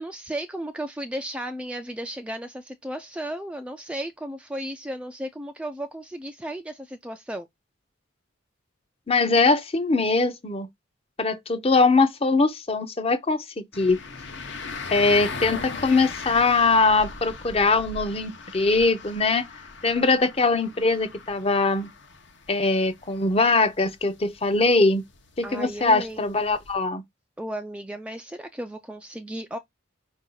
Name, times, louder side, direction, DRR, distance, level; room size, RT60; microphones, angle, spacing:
voice 1, 0.0-7.5 25.4-26.6 27.4-29.6, right 1 dB, 5° right, 0.3 m, -34 dB
voice 2, 9.1-10.7 11.2-14.0 14.9-19.5 19.8-21.9 22.5-25.0 25.4-27.0, left 3 dB, 30° left, 0.6 m, -22 dB
sound 1, 13.7-26.7, left 4 dB, 60° left, 0.8 m, -39 dB
5.0 x 2.7 x 3.7 m
head